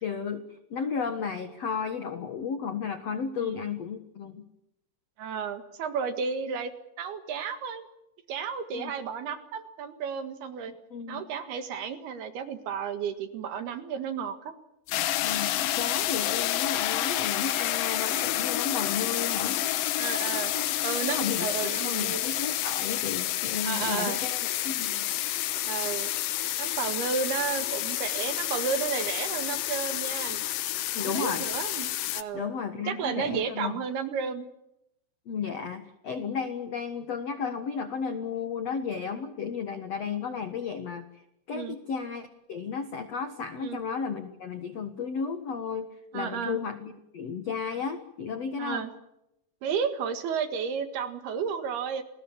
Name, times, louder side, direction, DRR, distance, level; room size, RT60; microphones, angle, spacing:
voice 1, 0.0-4.4 8.7-8.9 10.9-11.2 15.2-19.6 20.5-25.1 30.9-31.4 32.3-33.8 35.2-41.2 41.5-45.9 46.1-48.9, left 6 dB, 65° left, 9 dB, 1.6 m, -34 dB
voice 2, 5.2-6.7 7.0-7.9 8.3-10.7 11.1-14.5 20.0-20.5 20.8-22.2 23.6-24.2 25.6-26.1 26.6-30.4 31.0-31.9 32.1-32.5 32.7-34.5 41.5-41.8 43.6-43.8 46.1-46.6 48.6-48.9 49.6-52.0, right 6 dB, 65° right, 9 dB, 3.4 m, -32 dB
sound 1, 14.9-32.2, left 14 dB, 80° left, 2.0 m, -29 dB
29.5 x 20.5 x 7.2 m, 0.84 s
omnidirectional pair, 5.4 m